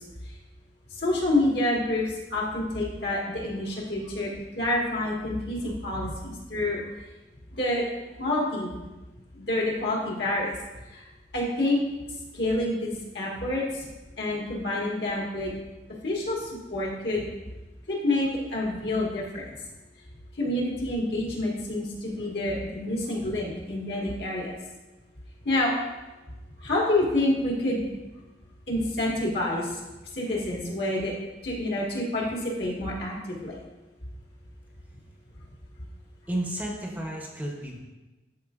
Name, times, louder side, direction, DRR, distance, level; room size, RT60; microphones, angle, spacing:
voice 1, 1.0-6.8 7.6-7.8 8.2-8.7 9.3-10.5 10.9-11.0 11.3-11.8 12.3-13.6 14.2-15.5 16.0-17.3 17.9-19.5 20.4-24.5 25.4-25.7 26.6-27.8 28.7-29.8 30.1-31.1 31.4-33.6, left 1 dB, 65° left, -3 dB, 1.7 m, -28 dB
voice 2, 36.3-37.8, right 1 dB, 10° right, -1 dB, 0.8 m, -32 dB
11.5 x 4.6 x 2.4 m, 1.1 s
head